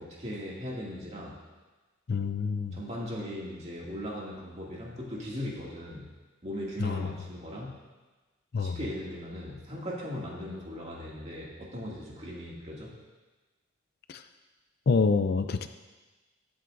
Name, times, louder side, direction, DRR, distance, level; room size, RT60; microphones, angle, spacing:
voice 1, 0.0-1.4 2.7-6.1 6.4-7.8 8.6-12.9, equal, 35° right, -4 dB, 2.3 m, -38 dB
voice 2, 2.1-2.8 6.8-7.1 8.5-8.8 14.1-14.2 14.9-15.7, left 4 dB, 50° left, 9 dB, 0.5 m, -27 dB
20.5 x 7.7 x 2.6 m, 1.2 s
head